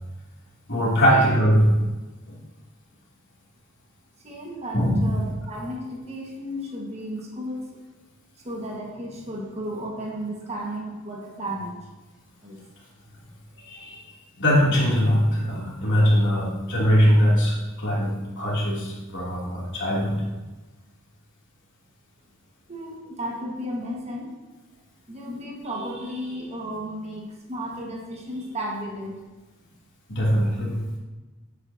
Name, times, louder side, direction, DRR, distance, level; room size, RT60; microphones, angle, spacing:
voice 1, 0.7-1.7 2.3-2.4 4.7-5.2 13.7-14.0 14.4-20.1 30.1-30.8, equal, 60° left, -5 dB, 3.1 m, -21 dB
voice 2, 4.2-7.6 8.4-11.7 12.4-12.6 22.7-24.3 25.1-29.1, equal, 30° right, -1 dB, 1.7 m, -34 dB
15.5 x 8.3 x 2.9 m, 1.2 s
head